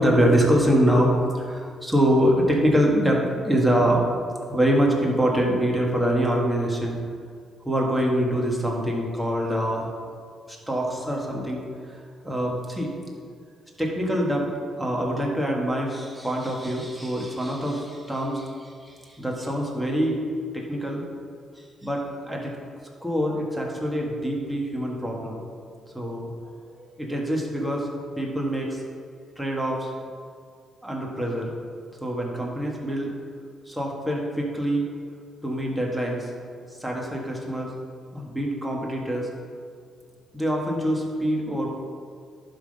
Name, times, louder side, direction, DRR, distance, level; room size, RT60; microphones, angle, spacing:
voice 1, 0.0-7.0 7.7-9.9 10.7-11.9 12.2-12.9 13.8-14.5 14.8-20.2 20.5-21.0 21.8-22.5 23.0-25.4 25.9-26.3 26.8-27.9 28.2-28.8 29.4-29.9 30.8-31.5 32.0-33.1 33.7-34.9 35.4-36.3 36.8-37.7 38.1-39.3 40.3-41.7, equal, 5° right, -2 dB, 1.8 m, -24 dB
11.5 x 3.9 x 5.4 m, 2.1 s
cardioid pair, 90°, 0 cm